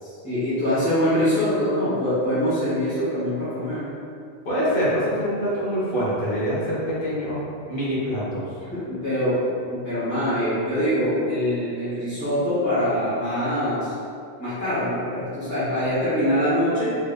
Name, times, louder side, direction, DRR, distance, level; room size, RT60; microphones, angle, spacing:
voice 1, 0.0-3.9 8.7-13.9 14.4-17.0, equal, 15° left, -14 dB, 1.3 m, -24 dB
voice 2, 4.4-7.4 7.7-8.4, equal, 55° left, -8 dB, 1.2 m, -25 dB
3.4 x 3.4 x 2.2 m, 2.4 s
omnidirectional pair, 1.1 m